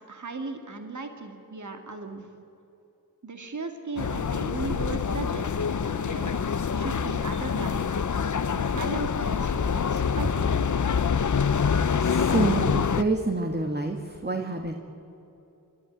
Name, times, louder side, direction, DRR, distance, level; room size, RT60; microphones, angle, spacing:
voice 1, 0.0-2.3 3.2-5.7 6.0-6.4 6.7-8.0 8.5-10.7, right 3 dB, 60° right, 5 dB, 2.1 m, -37 dB
sound 1, 4.0-13.0, left 6 dB, 60° left, 0.8 m, -26 dB
voice 2, 11.5-14.8, right 3 dB, 30° right, 3 dB, 1.7 m, -28 dB
28.5 x 12.5 x 9.7 m, 3.0 s
wide cardioid pair, 60°, 33 cm